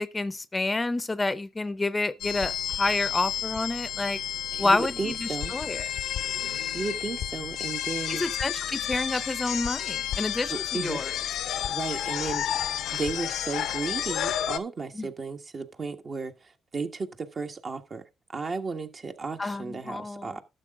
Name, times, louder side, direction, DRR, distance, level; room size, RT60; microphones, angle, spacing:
voice 1, 0.0-4.2 4.6-5.9 8.1-11.1 14.9-15.1 19.4-20.4, left 2 dB, 25° left, 0.7 m, -29 dB
sound 1, 2.2-14.6, left 10 dB, 75° left, 0.8 m, -31 dB
voice 2, 4.5-5.6 6.7-8.2 10.5-11.0 11.7-16.3 16.7-18.0 18.3-20.4, right 4 dB, 45° right, 1.4 m, -34 dB
12.0 x 6.8 x 3.7 m
supercardioid pair, 60°, 0 cm